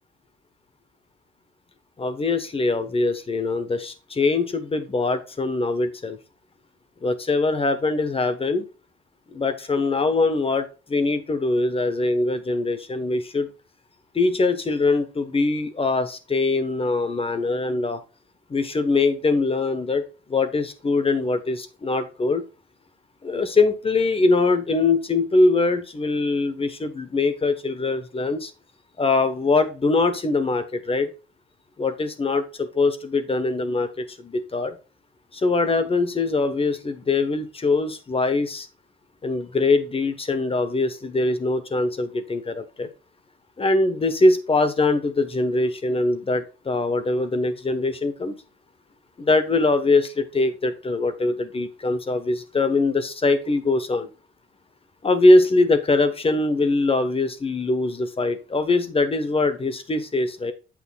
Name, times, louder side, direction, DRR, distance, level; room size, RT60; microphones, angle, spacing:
voice 1, 2.0-6.2 7.0-8.7 9.3-13.5 14.1-18.0 18.5-20.0 20.3-22.4 23.2-28.5 29.0-31.1 31.8-34.8 35.3-38.7 39.2-42.9 43.6-48.3 49.2-54.1 55.0-60.5, left 3 dB, 30° left, 10 dB, 1.1 m, -22 dB
8.1 x 6.0 x 2.3 m, 0.31 s
cardioid pair, 90°, 20 cm